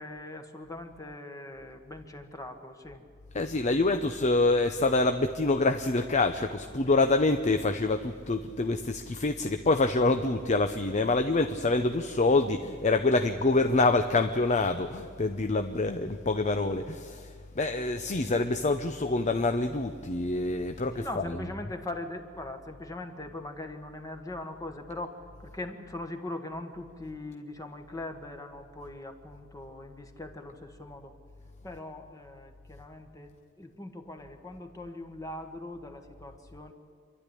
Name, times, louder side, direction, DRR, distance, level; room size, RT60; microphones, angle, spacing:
voice 1, 0.0-3.0 6.8-7.0 20.9-31.1 31.6-36.7, left 2 dB, 15° left, 5 dB, 1.5 m, -41 dB
voice 2, 3.3-21.5, left 2 dB, 35° left, 7 dB, 0.7 m, -26 dB
27.0 x 12.0 x 9.9 m, 2.2 s
head